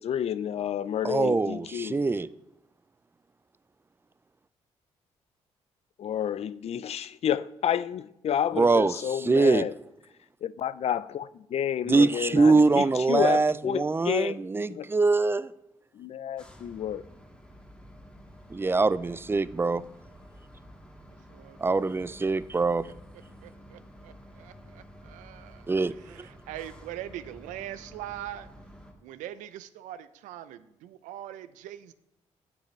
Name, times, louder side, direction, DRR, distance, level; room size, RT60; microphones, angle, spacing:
voice 1, 0.0-2.0 6.0-9.7 10.4-14.4 14.7-14.9 15.9-17.0, left 9 dB, 55° left, 0.4 m, -30 dB
voice 2, 1.0-2.3 8.6-8.9 9.2-9.6 11.9-15.5 18.5-19.8 21.6-22.9 25.7-25.9 26.2-26.3, right 3 dB, 20° right, 0.3 m, -23 dB
sound 1, 16.4-28.9, equal, 5° left, 1.7 m, -50 dB
voice 3, 21.3-21.9 23.4-28.5 29.0-31.9, right 12 dB, 85° right, 0.4 m, -42 dB
9.7 x 6.4 x 3.2 m
supercardioid pair, 55°, 13 cm